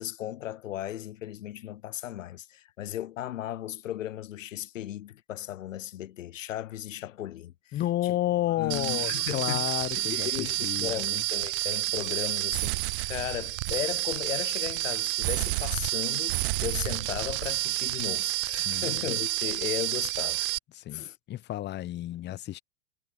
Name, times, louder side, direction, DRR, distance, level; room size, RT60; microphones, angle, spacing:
voice 1, 0.0-7.8 8.0-8.2 8.6-9.6 10.0-20.5 20.9-21.2, left 12 dB, 80° left, 0.6 m, -36 dB
voice 2, 7.7-11.2 12.5-12.6 18.6-19.1 20.7-22.6, left 14 dB, 30° left, 1.0 m, -31 dB
sound 1, 8.7-20.6, right 23 dB, 45° right, 0.5 m, -30 dB
hypercardioid pair, 100°, 38 cm